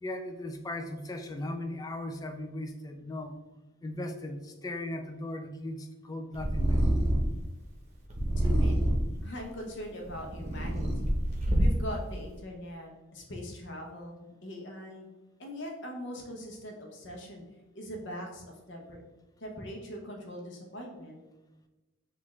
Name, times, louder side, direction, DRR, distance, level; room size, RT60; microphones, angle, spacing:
voice 1, 0.0-3.4 3.8-6.8, left 1 dB, 15° left, 5 dB, 0.3 m, -37 dB
Purr, 6.3-7.4 8.1-9.2 9.9-12.0, right 1 dB, 30° right, 0.8 m, -26 dB
voice 2, 8.4-11.1 11.6-15.1 15.4-17.4 17.7-19.0 19.4-21.2, equal, 55° left, 1 dB, 0.8 m, -41 dB
5.9 x 2.4 x 3.1 m, 1.1 s
head